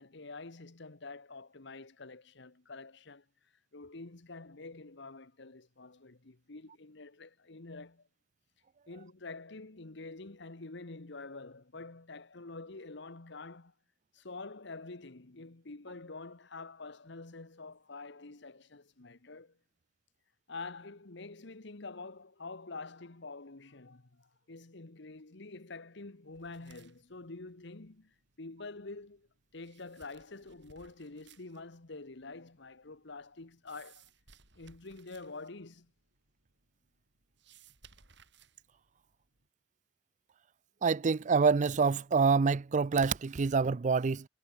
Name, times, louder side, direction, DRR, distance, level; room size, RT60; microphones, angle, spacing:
voice 1, 0.0-3.2 3.7-8.1 8.9-13.7 14.1-19.6 20.5-29.3 29.5-34.0 34.5-35.9, left 3 dB, 65° left, 1.4 m, -47 dB
sound 1, 26.3-39.5, right 6 dB, 65° right, 6.4 m, -64 dB
voice 2, 40.8-44.3, right 5 dB, 40° right, 0.4 m, -26 dB
head